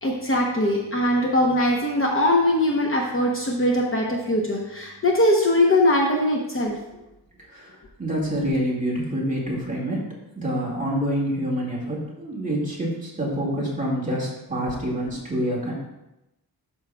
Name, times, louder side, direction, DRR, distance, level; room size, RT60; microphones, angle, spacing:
voice 1, 0.0-6.8, left 1 dB, 35° left, -1 dB, 0.8 m, -21 dB
voice 2, 7.5-10.0 10.4-15.7, equal, 20° right, -5 dB, 1.9 m, -27 dB
11.5 x 5.5 x 2.3 m, 0.93 s
wide cardioid pair, 170°, 39 cm